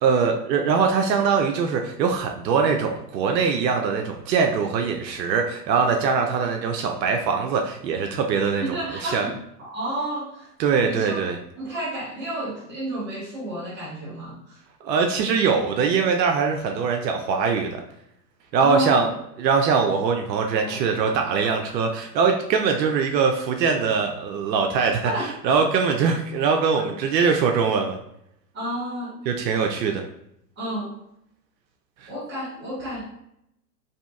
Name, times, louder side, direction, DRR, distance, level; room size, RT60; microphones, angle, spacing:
voice 1, 0.0-9.3 10.6-11.4 14.8-17.8 18.5-19.1 19.4-25.1 25.4-28.0 29.3-30.0 32.0-32.1, right 5 dB, 80° right, 4 dB, 0.6 m, -22 dB
voice 2, 8.6-9.3 9.6-10.5 10.8-11.2 11.6-14.6 18.6-19.1 20.6-20.8 25.0-25.3 26.7-26.9 28.5-29.2 30.6-30.9 32.1-33.1, right 1 dB, 20° right, -6 dB, 1.4 m, -31 dB
2.7 x 2.7 x 2.2 m, 0.77 s
hypercardioid pair, 115°, 50 cm